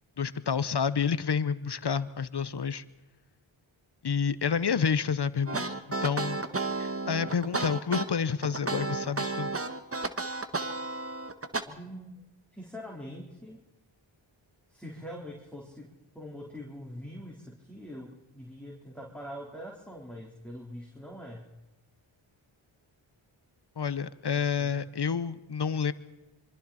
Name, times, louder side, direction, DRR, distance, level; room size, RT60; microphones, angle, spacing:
voice 1, 0.2-2.8 4.0-5.7 6.0-6.4 6.8-9.5 23.8-25.9, left 6 dB, 55° left, 15 dB, 1.1 m, -29 dB
sound 1, 5.5-11.6, right 3 dB, 30° right, 1.6 m, -32 dB
voice 2, 11.6-12.2 12.5-13.6 14.7-21.5, equal, 5° left, -2 dB, 4.0 m, -43 dB
26.0 x 24.0 x 4.3 m, 1.0 s
cardioid pair, 40°, 49 cm